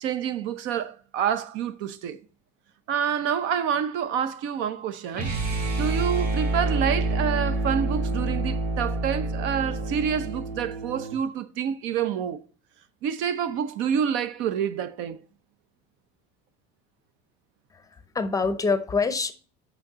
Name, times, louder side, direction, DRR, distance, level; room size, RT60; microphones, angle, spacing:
voice 1, 0.0-2.2 2.9-5.3 5.8-12.4 13.0-15.2, right 8 dB, 65° right, 0.7 m, -27 dB
sound 1, 5.1-11.2, right 2 dB, 45° right, 2.8 m, -27 dB
voice 2, 17.7-19.3, left 4 dB, 15° left, 0.6 m, -26 dB
6.2 x 5.8 x 4.0 m
supercardioid pair, 125°, 21 cm